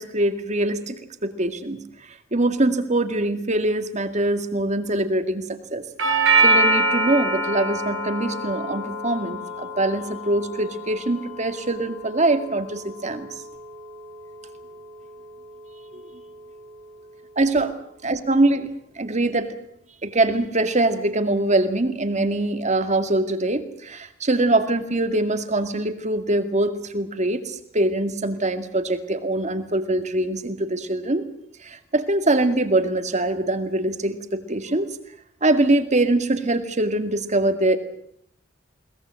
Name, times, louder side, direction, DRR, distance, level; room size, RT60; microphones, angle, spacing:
voice 1, 0.0-1.8 2.3-5.8 6.4-13.3 15.9-16.0 17.4-17.8 18.0-19.5 20.0-31.3 31.6-34.9 35.4-37.8, right 2 dB, 35° right, 9 dB, 2.1 m, -23 dB
Doorbell, 6.0-14.0, right 2 dB, 80° right, 6.0 m, -25 dB
22.5 x 20.0 x 7.7 m, 0.69 s
head